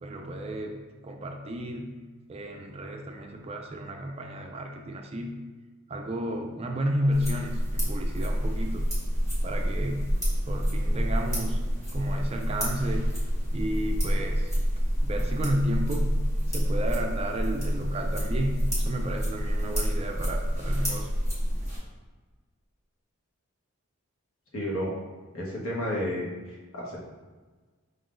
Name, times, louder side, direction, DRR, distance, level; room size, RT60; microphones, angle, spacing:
voice 1, 0.0-2.0 2.3-5.5 5.9-8.8 9.4-10.1 10.4-11.6 11.9-13.1 13.5-14.5 15.0-16.2 16.5-21.1, equal, 30° right, 3 dB, 0.3 m, -32 dB
sound 1, 7.1-21.8, equal, 15° left, 1.2 m, -28 dB
voice 2, 24.5-24.9 25.3-27.0, equal, 75° left, -4 dB, 1.2 m, -31 dB
5.1 x 3.9 x 2.5 m, 1.4 s
head